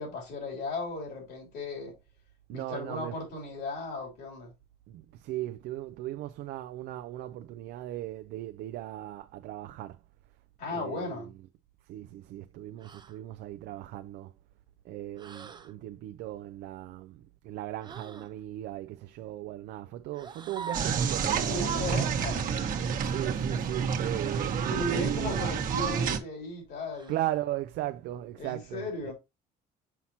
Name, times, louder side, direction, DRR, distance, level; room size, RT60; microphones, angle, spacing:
voice 1, 0.0-1.9 2.5-4.5 10.6-11.3 21.3-22.4 24.7-27.1 28.4-29.1, left 2 dB, 75° left, 3.2 m, -36 dB
voice 2, 2.5-3.2 4.9-10.0 10.7-11.3 11.9-14.3 14.8-22.2 23.0-25.4 27.1-29.1, right 14 dB, 80° right, 0.4 m, -37 dB
sound 1, 12.8-13.2 15.2-15.7 17.8-18.3 20.1-21.1 22.7-22.9 25.0-25.5 26.9-27.4, right 5 dB, 25° right, 0.6 m, -44 dB
sound 2, 20.7-26.2, right 6 dB, 55° right, 1.2 m, -29 dB
5.8 x 5.7 x 2.8 m
cardioid pair, 110°, 17 cm